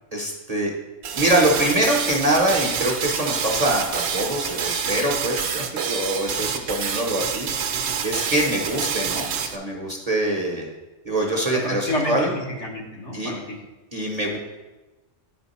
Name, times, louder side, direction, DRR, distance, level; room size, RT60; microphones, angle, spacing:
voice 1, 0.1-0.7 1.1-10.7 11.0-12.3 13.1-13.3 13.9-14.4, right 1 dB, 35° right, -1 dB, 0.8 m, -24 dB
sound 1, 1.0-9.6, right 7 dB, 65° right, 0.8 m, -27 dB
voice 2, 11.5-13.6, left 1 dB, 65° left, -1 dB, 1.5 m, -29 dB
9.8 x 4.3 x 4.1 m, 1.1 s
omnidirectional pair, 1.3 m